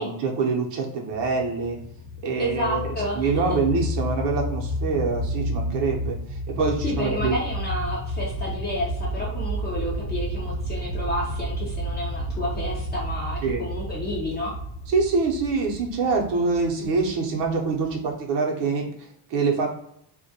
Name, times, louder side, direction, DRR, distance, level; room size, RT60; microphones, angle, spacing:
voice 1, 0.0-1.8 2.2-7.4 13.4-13.6 14.9-19.7, right 4 dB, 60° right, 1 dB, 0.7 m, -25 dB
sound 1, 1.1-18.1, equal, 60° left, 0.6 m, -31 dB
voice 2, 2.4-3.4 6.8-14.5, equal, 25° left, -5 dB, 0.4 m, -30 dB
2.2 x 2.1 x 2.6 m, 0.73 s
cardioid pair, 155°, 48 cm